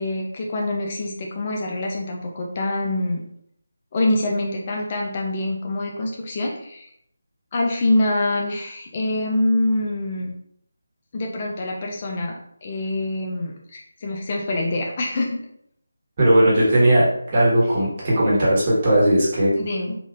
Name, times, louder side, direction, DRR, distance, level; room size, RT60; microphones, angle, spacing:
voice 1, 0.0-3.2 3.9-6.9 7.5-10.3 11.1-15.4 19.6-20.0, left 1 dB, 30° left, 0 dB, 0.4 m, -25 dB
voice 2, 16.2-19.5, right 1 dB, 30° right, -7 dB, 1.3 m, -17 dB
3.4 x 2.5 x 2.4 m, 0.71 s
figure-of-eight pair, 160°, 0 cm